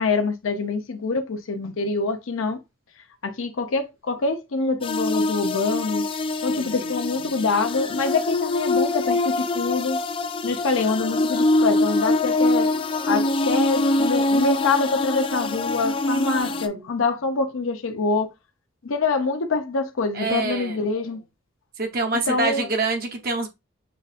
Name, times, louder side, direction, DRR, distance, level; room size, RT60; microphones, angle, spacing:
voice 1, 0.0-2.6 3.2-6.0 6.4-10.0 10.4-12.7 13.1-18.3 18.8-21.2 22.3-22.7, left 4 dB, 90° left, 0.6 m, -25 dB
sound 1, 4.8-16.7, left 2 dB, 25° left, 0.3 m, -24 dB
voice 2, 6.6-7.0 16.4-16.9 20.1-20.9 21.8-23.5, right 3 dB, 50° right, 0.7 m, -27 dB
6.9 x 2.5 x 2.4 m
head